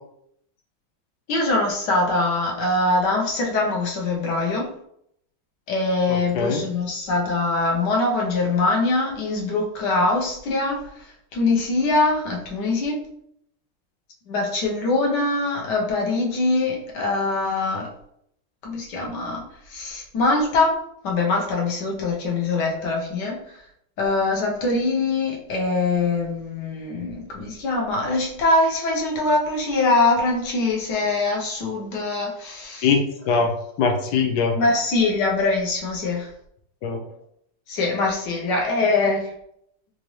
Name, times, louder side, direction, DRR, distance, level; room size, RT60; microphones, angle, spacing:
voice 1, 1.3-4.7 5.7-11.0 11.3-12.9 14.3-17.9 18.6-19.4 19.7-20.7 21.0-23.4 24.0-32.9 34.5-36.3 37.7-39.3, left 3 dB, 60° left, -1 dB, 1.3 m, -23 dB
voice 2, 6.1-6.6 32.8-33.5 33.8-34.6 36.8-37.0, left 5 dB, 80° left, 1 dB, 0.9 m, -22 dB
4.1 x 2.6 x 3.1 m, 0.72 s
omnidirectional pair, 2.4 m